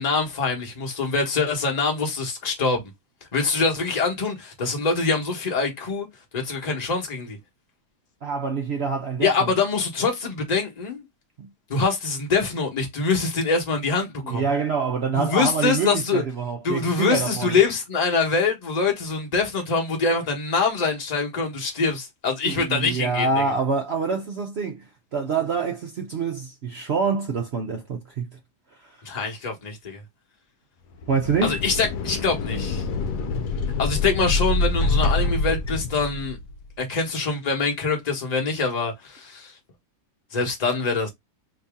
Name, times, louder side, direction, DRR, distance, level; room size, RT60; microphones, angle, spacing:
voice 1, 0.0-2.9 3.3-6.1 6.3-7.4 9.2-11.0 11.7-14.4 15.1-16.2 16.6-23.4 29.0-30.0 31.4-32.8 33.8-36.4 36.8-39.5 40.3-41.1, left 4 dB, 30° left, 1.0 m, -24 dB
voice 2, 8.2-9.5 11.4-11.5 14.2-17.6 22.4-28.4 28.7-29.0 31.1-31.6, right 5 dB, 65° right, 0.6 m, -26 dB
sound 1, 30.9-36.6, left 3 dB, 80° left, 1.1 m, -26 dB
3.0 x 2.7 x 3.5 m
omnidirectional pair, 1.7 m